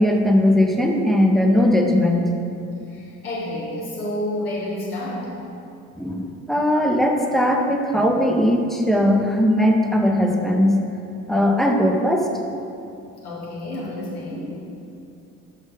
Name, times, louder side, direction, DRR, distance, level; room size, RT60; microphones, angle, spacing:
voice 1, 0.0-2.3 6.0-10.8 11.3-12.3, left 1 dB, ahead, 1 dB, 0.6 m, -19 dB
voice 2, 2.9-5.3 13.2-14.6, left 1 dB, 85° left, -6 dB, 1.3 m, -29 dB
6.1 x 3.8 x 5.2 m, 2.7 s
figure-of-eight pair, 45°, 44 cm